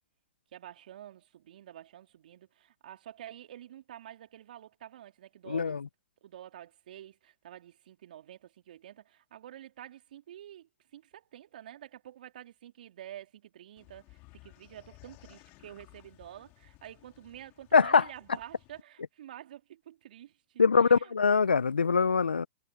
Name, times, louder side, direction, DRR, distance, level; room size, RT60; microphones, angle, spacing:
voice 1, 0.5-5.8 6.2-21.1, right 11 dB, 65° right, 3.5 m, -49 dB
voice 2, 5.5-5.9 17.7-18.0 20.6-22.5, left 5 dB, 85° left, 0.6 m, -23 dB
sound 1, 13.8-18.8, left 25 dB, 40° left, 3.5 m, -58 dB
figure-of-eight pair, 105°, 5 cm